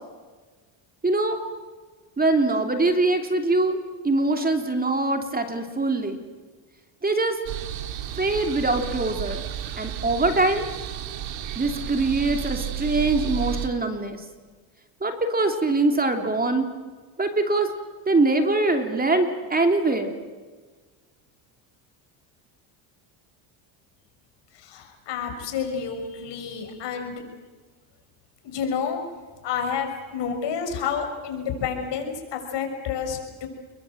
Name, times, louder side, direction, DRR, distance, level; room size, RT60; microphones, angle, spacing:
voice 1, 1.0-1.4 2.2-6.2 7.0-7.4 8.2-9.4 9.8-10.7 11.5-14.2 15.0-16.7 17.2-17.7 18.1-20.1, right 2 dB, 20° right, 5 dB, 2.9 m, -23 dB
sound 1, 7.5-13.7, right 10 dB, 70° right, 2.7 m, -32 dB
voice 2, 24.5-27.2 28.4-29.0 29.4-33.5, left 6 dB, 65° left, 4 dB, 6.5 m, -29 dB
29.0 x 22.5 x 7.8 m, 1.4 s
supercardioid pair, 95°, 46 cm